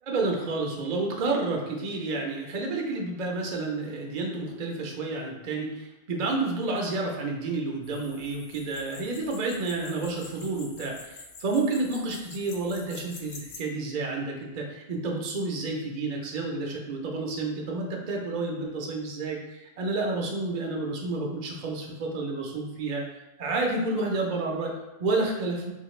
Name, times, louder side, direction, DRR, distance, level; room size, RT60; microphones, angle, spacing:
voice 1, 0.0-23.1 23.4-25.7, right 3 dB, 50° right, 0 dB, 0.6 m, -30 dB
sound 1, 7.8-13.6, left 3 dB, 60° left, 0.7 m, -47 dB
3.5 x 2.8 x 3.1 m, 1.0 s
omnidirectional pair, 1.2 m